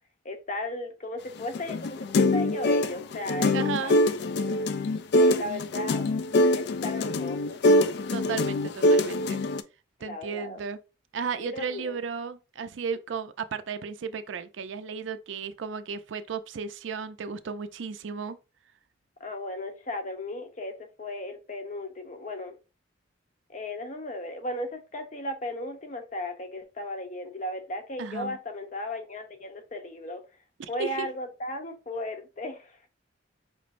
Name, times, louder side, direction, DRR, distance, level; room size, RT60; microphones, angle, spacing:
voice 1, 0.2-3.5 3.8-3.9 5.1-6.1 6.5-7.6 10.0-10.6 11.4-12.0 19.2-22.6 23.5-30.2 30.7-32.9, left 1 dB, 40° left, 0.7 m, -36 dB
sound 1, 1.4-9.6, left 1 dB, 60° left, 0.3 m, -24 dB
voice 2, 3.5-4.0 8.1-9.4 10.0-10.8 11.1-18.4 28.0-28.4 30.6-31.1, right 6 dB, 75° right, 0.4 m, -34 dB
5.1 x 3.1 x 2.5 m
head